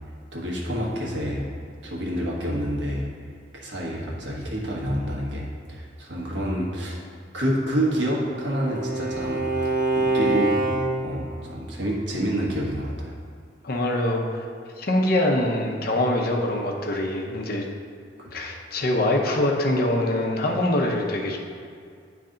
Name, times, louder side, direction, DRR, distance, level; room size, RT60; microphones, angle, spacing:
voice 1, 0.3-1.4 1.8-3.1 3.5-7.0 7.3-10.6 11.0-13.1 18.2-18.3, equal, 85° right, -3 dB, 1.3 m, -28 dB
Bowed string instrument, 7.6-11.3, right 3 dB, 50° right, 0.6 m, -26 dB
voice 2, 13.6-14.4 14.8-17.7 18.3-21.4, left 1 dB, 55° left, 1 dB, 0.8 m, -24 dB
9.8 x 3.3 x 3.8 m, 2.3 s
head